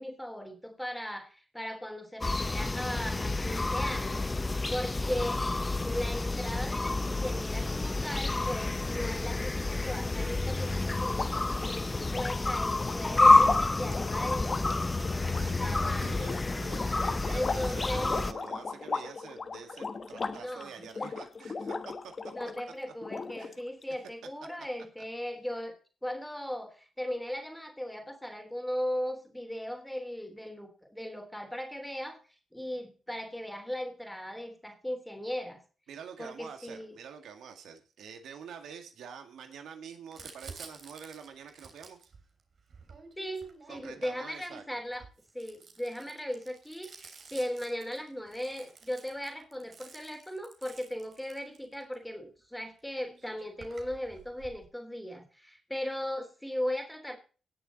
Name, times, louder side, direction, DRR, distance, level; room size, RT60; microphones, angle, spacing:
voice 1, 0.0-5.4 5.8-15.1 15.6-16.3 17.3-18.1 20.2-21.1 22.3-25.8 26.0-32.2 32.5-35.6 36.2-37.0 43.2-45.0 45.3-57.2, equal, 5° left, 5 dB, 3.2 m, -38 dB
sound 1, 2.2-18.3, left 2 dB, 20° left, 0.8 m, -28 dB
sound 2, 11.0-22.6 23.0-23.8, left 4 dB, 40° left, 1.3 m, -38 dB
voice 2, 15.3-22.1 23.4-23.6 35.9-42.1 43.7-44.7, right 7 dB, 90° right, 7 dB, 2.0 m, -47 dB
Crumpling crinkling, 40.1-44.2 44.8-51.9 52.8-52.9 53.1-54.6, right 4 dB, 55° right, 3.3 m, -51 dB
18.5 x 6.8 x 4.0 m, 0.37 s
cardioid pair, 105°, 0 cm